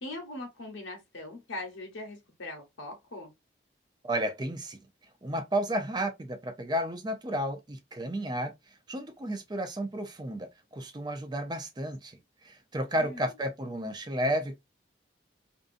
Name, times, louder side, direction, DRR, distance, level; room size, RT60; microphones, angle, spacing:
voice 1, 0.0-3.3 12.9-13.3, left 2 dB, 90° left, 0.9 m, -41 dB
voice 2, 4.0-4.8 5.2-8.5 8.9-12.2 12.4-14.6, right 1 dB, 20° right, 0.5 m, -32 dB
2.6 x 2.4 x 2.5 m
head